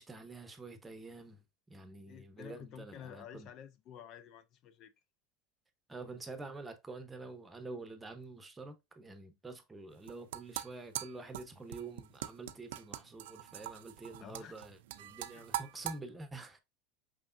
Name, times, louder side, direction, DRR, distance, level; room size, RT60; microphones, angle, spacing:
voice 1, 0.0-3.5 5.9-16.6, right 3 dB, 15° right, 0.9 m, -47 dB
voice 2, 2.1-4.9 14.2-14.6 15.3-15.4, left 9 dB, 50° left, 0.4 m, -51 dB
sound 1, 9.9-16.0, right 13 dB, 85° right, 0.4 m, -42 dB
5.1 x 3.4 x 2.5 m
supercardioid pair, 125°, 0 cm